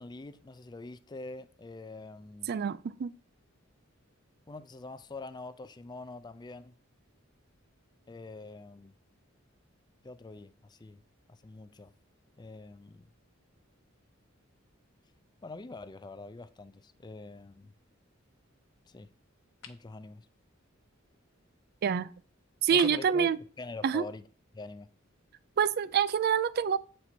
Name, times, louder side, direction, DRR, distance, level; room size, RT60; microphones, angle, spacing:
voice 1, 0.0-2.5 4.5-6.7 8.1-8.9 10.0-11.0 11.3-11.9 12.4-13.1 15.4-17.7 18.9-19.1 19.7-20.3 22.7-24.3 24.5-24.9, left 3 dB, 20° left, 0.4 m, -45 dB
voice 2, 2.5-3.1 21.8-22.1 22.6-23.4 23.8-24.0 25.6-26.8, right 7 dB, 50° right, 0.4 m, -26 dB
sound 1, 19.6-19.9 22.8-23.2, left 6 dB, 80° left, 0.9 m, -46 dB
8.0 x 4.4 x 4.3 m
head